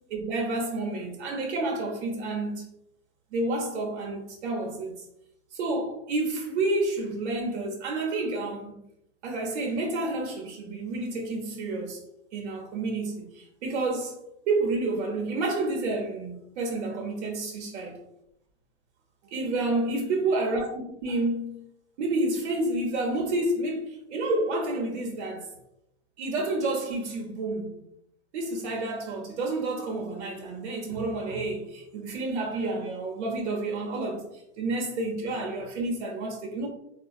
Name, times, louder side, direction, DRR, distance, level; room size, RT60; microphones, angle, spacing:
voice 1, 0.1-2.6 3.3-4.9 5.5-8.7 9.2-12.0 12.3-14.1 14.5-18.0 19.2-21.6 22.0-25.5 26.2-27.8 28.3-34.2 34.6-36.7, right 2 dB, 75° right, 0.9 m, -29 dB
3.8 x 2.3 x 2.4 m
hypercardioid pair, 115°, 34 cm